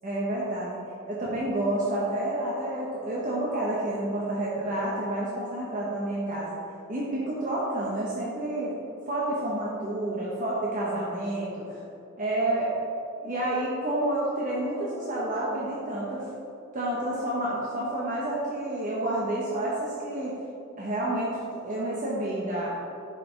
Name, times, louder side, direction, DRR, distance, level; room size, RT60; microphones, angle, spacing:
voice 1, 0.0-0.8 1.1-6.6 6.9-8.7 9.1-11.8 12.2-12.7 13.2-16.3 16.7-20.4 20.8-22.7, right 1 dB, 40° right, -5 dB, 1.0 m, -29 dB
10.5 x 5.0 x 4.5 m, 2.7 s
head